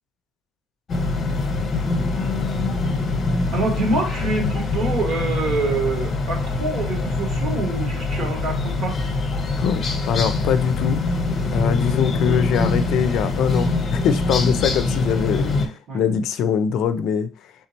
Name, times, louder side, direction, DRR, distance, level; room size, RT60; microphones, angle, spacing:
sound 1, 0.9-15.7, left 3 dB, 35° left, 1.0 m, -24 dB
voice 1, 3.5-9.0 15.9-16.0, right 3 dB, 55° right, 1.8 m, -26 dB
voice 2, 9.6-11.0 11.5-17.3, left 7 dB, 70° left, 0.5 m, -22 dB
4.1 x 3.6 x 2.9 m
cardioid pair, 115°, 0 cm